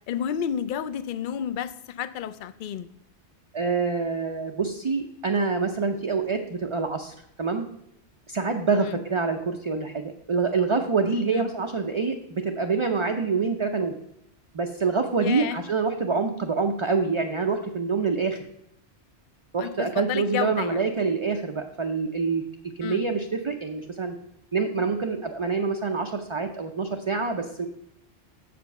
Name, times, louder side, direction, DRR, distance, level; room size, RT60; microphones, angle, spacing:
voice 1, 0.1-2.9 8.8-9.0 11.3-11.5 15.2-15.6 19.6-20.8 22.8-23.0, left 9 dB, 60° left, 12 dB, 0.6 m, -31 dB
voice 2, 3.5-7.7 8.3-13.9 14.5-18.4 19.5-22.4 22.8-24.1 24.5-27.7, right 4 dB, 40° right, 4 dB, 0.5 m, -26 dB
7.0 x 5.1 x 6.5 m, 0.79 s
omnidirectional pair, 1.2 m